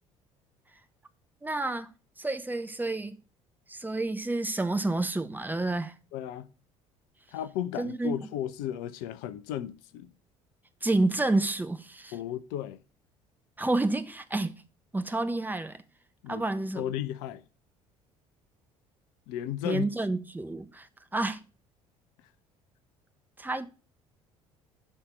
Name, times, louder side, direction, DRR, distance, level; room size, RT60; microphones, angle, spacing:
voice 1, 1.4-1.9 2.2-3.2 3.7-5.9 7.8-8.2 10.8-12.1 13.6-14.6 14.9-15.8 16.3-16.8 19.6-20.9 21.1-21.4 23.4-23.7, right 2 dB, 10° right, 1.1 m, -29 dB
voice 2, 6.1-6.5 7.3-10.1 12.1-12.8 16.2-16.4 16.7-17.4 19.3-19.9, left 11 dB, 60° left, 0.7 m, -34 dB
11.5 x 4.2 x 5.2 m
figure-of-eight pair, 55°, 17 cm